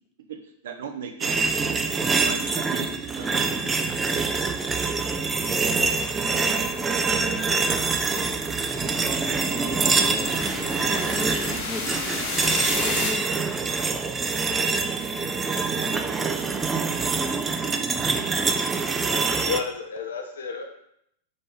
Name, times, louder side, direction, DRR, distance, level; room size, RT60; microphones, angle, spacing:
voice 1, 0.3-1.6 2.2-3.8, right 6 dB, 70° right, 5 dB, 0.6 m, -38 dB
sound 1, 1.2-19.6, right 4 dB, 15° right, 0.3 m, -25 dB
sound 2, 7.4-13.1, left 3 dB, 50° left, 1.1 m, -33 dB
voice 2, 9.7-13.4, left 1 dB, 5° left, 2 dB, 0.7 m, -36 dB
voice 3, 19.4-20.6, left 5 dB, 75° left, 4 dB, 0.6 m, -31 dB
4.0 x 3.4 x 3.4 m, 0.73 s
hypercardioid pair, 100°, 0 cm